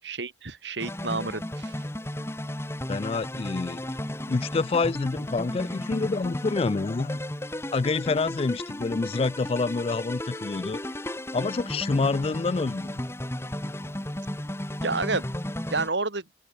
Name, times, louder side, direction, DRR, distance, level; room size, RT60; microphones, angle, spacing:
voice 1, 0.0-1.7 14.8-15.3 15.7-16.2, right 3 dB, 75° right, 2.5 m, -29 dB
sound 1, 0.8-15.9, left 1 dB, 15° left, 1.6 m, -34 dB
voice 2, 2.9-3.9 4.3-7.2 7.7-10.8 11.3-13.0, left 3 dB, 30° left, 0.3 m, -27 dB
open air
head